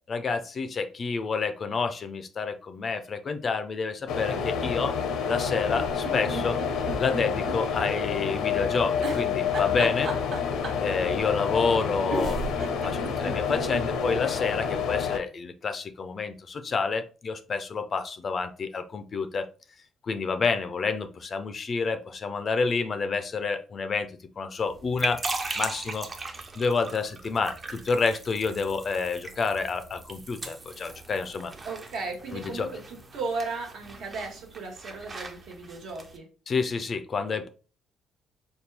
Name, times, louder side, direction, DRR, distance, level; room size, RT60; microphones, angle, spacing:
voice 1, 0.1-4.9 5.3-6.6 7.0-10.1 10.8-19.4 20.0-24.1 24.4-25.2 25.6-26.1 26.6-31.5 32.3-32.7 36.5-37.5, left 4 dB, 35° left, 10 dB, 0.4 m, -29 dB
sound 1, 4.1-15.2, left 6 dB, 80° left, 0.6 m, -28 dB
sound 2, 5.7-7.6 7.9-8.0 9.0-10.9 11.8-11.9 12.1-13.9 14.3-14.4 14.6-14.7, right 4 dB, 50° right, 0.9 m, -34 dB
sound 3, 24.6-36.2, right 3 dB, 25° right, 0.5 m, -39 dB
voice 2, 31.6-36.3, right 3 dB, 75° right, 0 dB, 1.3 m, -35 dB
4.3 x 2.3 x 3.3 m, 0.37 s
cardioid pair, 140°, 0 cm